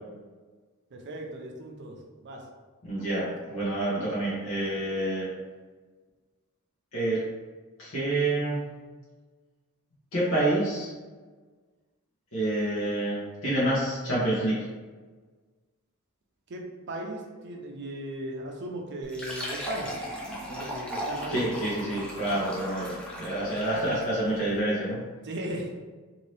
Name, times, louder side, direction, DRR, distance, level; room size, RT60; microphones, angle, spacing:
voice 1, 0.9-2.0 2.2-2.4 16.5-19.9 20.5-21.4 22.2-22.3 25.2-25.7, right 1 dB, 50° right, 1 dB, 0.5 m, -37 dB
voice 2, 2.8-5.3 6.9-7.2 7.8-8.6 10.1-10.9 12.3-14.7 21.3-25.0, right 1 dB, 65° left, -9 dB, 1.0 m, -28 dB
Fill (with liquid), 19.0-24.2, equal, 5° left, 0.4 m, -37 dB
2.7 x 2.7 x 3.2 m, 1.4 s
head